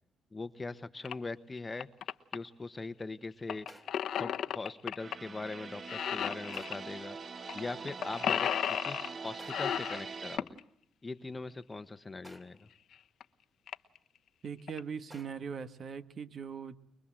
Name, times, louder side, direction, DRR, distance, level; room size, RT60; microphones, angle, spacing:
voice 1, 0.3-1.9 2.3-3.7 4.2-7.2 7.5-10.6 11.0-12.7, left 3 dB, 25° left, 12 dB, 1.2 m, -41 dB
sound 1, 0.9-1.4 3.7-4.2 6.5-7.0 9.4-10.0 12.2-12.8 15.1-15.7, equal, 15° right, 2.8 m, -57 dB
sound 2, 1.0-1.1 1.6-2.4 3.5-5.2 5.5-5.6 5.9-6.8 7.5-7.6 7.9-9.1 9.5-10.6 12.3-12.4 12.9-13.0 13.2-13.3 13.7-14.0 14.5-14.8, left 9 dB, 70° left, 1.1 m, -34 dB
sound 3, 5.0-10.4, right 4 dB, 40° right, 1.0 m, -44 dB
voice 2, 14.4-16.8, right 6 dB, 55° right, 11 dB, 1.6 m, -40 dB
24.5 x 22.5 x 7.6 m, 0.70 s
cardioid pair, 90°, 0 cm